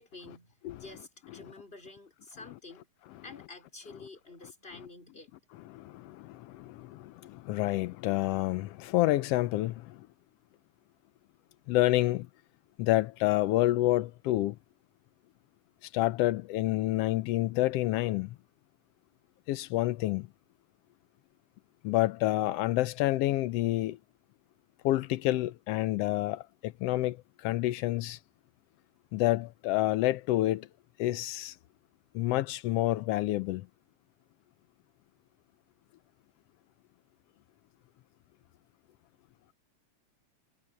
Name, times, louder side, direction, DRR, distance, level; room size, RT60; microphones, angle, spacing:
voice 1, 0.0-2.9 3.2-5.5, left 3 dB, 20° left, 4.0 m, -49 dB
voice 2, 5.7-10.1 11.7-12.3 12.8-14.6 15.9-18.3 19.5-20.3 21.8-24.0 24.8-28.2 29.1-30.7 31.0-31.5 32.1-33.7, left 16 dB, 85° left, 1.3 m, -28 dB
omnidirectional pair, 3.4 m